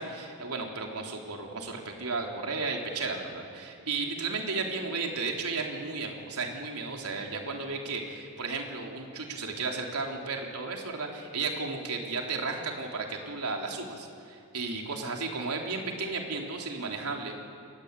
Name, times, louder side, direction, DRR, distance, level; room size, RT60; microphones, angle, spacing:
voice 1, 0.0-17.4, right 4 dB, 85° right, 1 dB, 3.7 m, -34 dB
28.0 x 20.5 x 8.4 m, 2.3 s
head